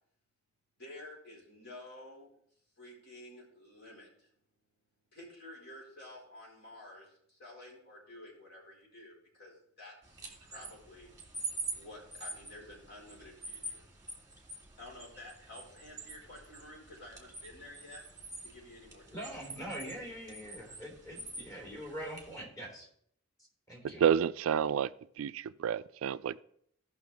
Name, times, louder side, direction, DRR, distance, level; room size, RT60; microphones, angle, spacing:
voice 1, 0.8-2.3 2.8-4.3 5.1-11.1 11.7-13.8 14.8-18.0 18.4-19.5, left 1 dB, 50° left, -4 dB, 4.5 m, -51 dB
sound 1, 10.0-22.4, right 3 dB, 15° right, 1.9 m, -46 dB
voice 2, 19.1-22.9 23.7-24.0, equal, 15° left, -4 dB, 3.5 m, -43 dB
voice 3, 24.0-24.9 25.2-26.4, right 8 dB, 70° right, 16 dB, 0.3 m, -29 dB
17.0 x 5.9 x 3.5 m, 0.68 s
head